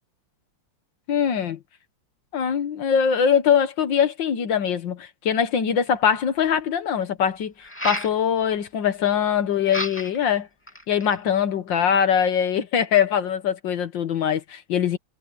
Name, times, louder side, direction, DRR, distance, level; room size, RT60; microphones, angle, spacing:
voice 1, 1.1-1.6 2.3-7.5 7.8-10.5 10.9-15.0, left 8 dB, 70° left, 1.8 m, -22 dB
sound 1, 5.9-6.0 7.6-8.2 9.7-10.2 10.7-11.2, left 1 dB, 5° left, 2.7 m, -31 dB
omnidirectional pair, 2.1 m